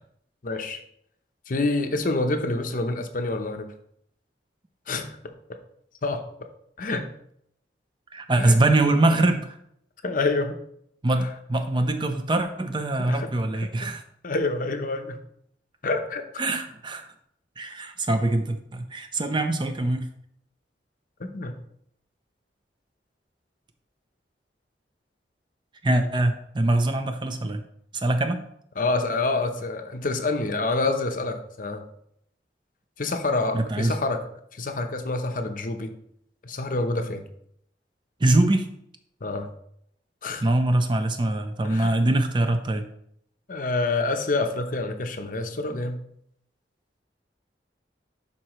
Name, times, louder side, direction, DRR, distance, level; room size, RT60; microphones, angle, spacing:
voice 1, 0.4-0.8 1.5-3.7 4.9-5.1 6.0-6.2 6.8-7.1 8.4-8.6 10.0-10.6 11.2-11.3 13.0-13.3 14.2-15.2 15.8-16.4 21.2-21.5 25.9-26.1 28.8-31.8 33.0-34.2 34.5-35.9 36.4-37.2 39.2-39.5 40.2-40.5 41.6-42.0 42.5-42.6 43.5-46.0, left 2 dB, 50° left, 6 dB, 0.7 m, -27 dB
voice 2, 8.1-9.6 11.0-14.0 16.4-17.1 17.6-20.0 25.8-27.6 27.9-28.4 33.5-34.0 38.2-38.7 40.4-42.9, right 2 dB, 25° right, 7 dB, 0.6 m, -23 dB
11.5 x 4.3 x 3.0 m, 0.70 s
head